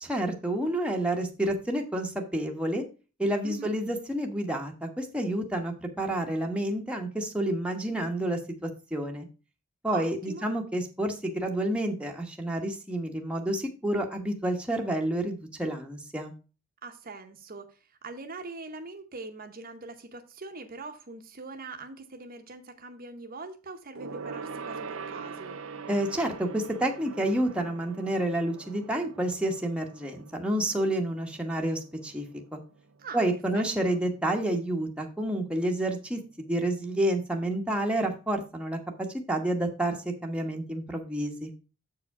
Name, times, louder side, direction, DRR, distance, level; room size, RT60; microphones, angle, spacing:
voice 1, 0.0-2.8 3.2-9.3 9.8-16.3 25.9-32.2 32.5-32.6 33.1-38.8 39.3-40.0 40.2-41.5, right 1 dB, 5° right, 1 dB, 1.1 m, -29 dB
voice 2, 9.9-10.5 16.8-25.6 33.0-33.2 33.5-34.0, right 3 dB, 45° right, 5 dB, 0.9 m, -42 dB
Gong, 23.9-33.7 34.0-34.3 34.6-34.7, right 5 dB, 75° right, 0.6 m, -43 dB
7.7 x 4.9 x 4.7 m, 0.33 s
head